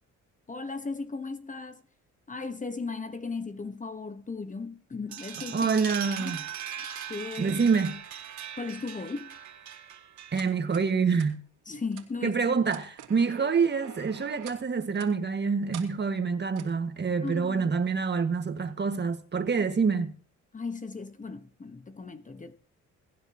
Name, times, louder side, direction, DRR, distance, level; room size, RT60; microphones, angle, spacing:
voice 1, 0.5-1.8 2.3-5.7 6.2-6.4 6.9-7.6 8.6-9.3 11.7-12.5 17.2-17.6 20.5-22.6, left 4 dB, 25° left, 1.2 m, -36 dB
sound 1, 5.1-10.6, right 9 dB, 70° right, 2.0 m, -40 dB
voice 2, 5.5-6.4 7.4-8.0 10.3-11.4 12.2-20.1, right 5 dB, 35° right, 1.7 m, -26 dB
Stop Start Tape. Player, 10.3-10.9 11.1-11.3 11.9-12.1 12.6-14.6 15.0-15.1 15.7-15.9 16.6-16.8, right 9 dB, 90° right, 2.7 m, -46 dB
23.0 x 10.5 x 2.9 m
cardioid pair, 90°, 30 cm